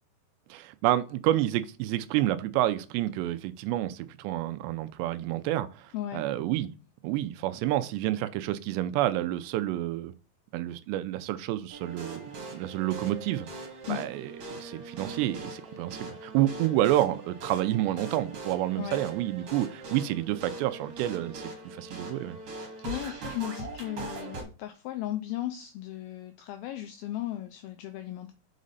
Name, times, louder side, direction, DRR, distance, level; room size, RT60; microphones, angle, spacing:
voice 1, 0.5-6.7 7.0-10.1 10.5-13.5 13.9-22.4, right 14 dB, 85° right, 2.8 m, -29 dB
voice 2, 5.9-6.2 13.9-14.0 18.8-19.0 22.6-28.3, left 13 dB, 90° left, 2.1 m, -36 dB
sound 1, 11.7-24.4, right 3 dB, 45° right, 2.2 m, -41 dB
6.4 x 5.0 x 4.1 m
omnidirectional pair, 4.9 m